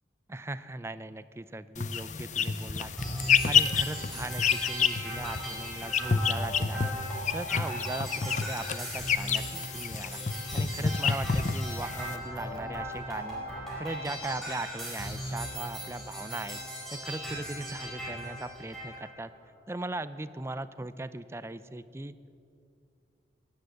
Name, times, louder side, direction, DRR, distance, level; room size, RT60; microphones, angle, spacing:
voice 1, 0.3-2.9 3.4-6.9 7.3-10.2 10.5-13.5 13.8-16.6 16.9-19.3 19.7-22.1, right 2 dB, 15° right, 13 dB, 0.4 m, -39 dB
sound 1, 1.8-12.2, left 6 dB, 40° left, 0.5 m, -29 dB
sound 2, 3.0-19.0, equal, ahead, 4.5 m, -38 dB
sound 3, 10.8-19.6, right 2 dB, 20° left, 3.1 m, -54 dB
16.5 x 10.5 x 7.7 m, 2.4 s
head